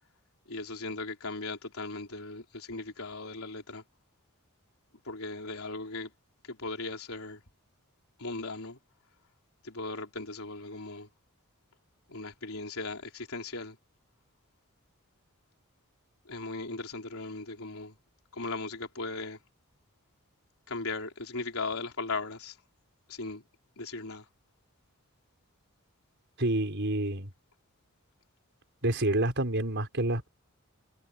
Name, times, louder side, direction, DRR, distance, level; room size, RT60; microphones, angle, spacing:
voice 1, 0.5-3.8 5.0-6.1 6.4-7.4 8.2-8.8 9.6-11.1 12.1-13.8 16.2-18.0 18.3-19.4 20.7-22.6 23.1-23.4 23.8-24.3, left 3 dB, 70° left, 4.4 m, -38 dB
voice 2, 26.4-27.3 28.8-30.3, right 1 dB, 55° right, 5.0 m, -28 dB
head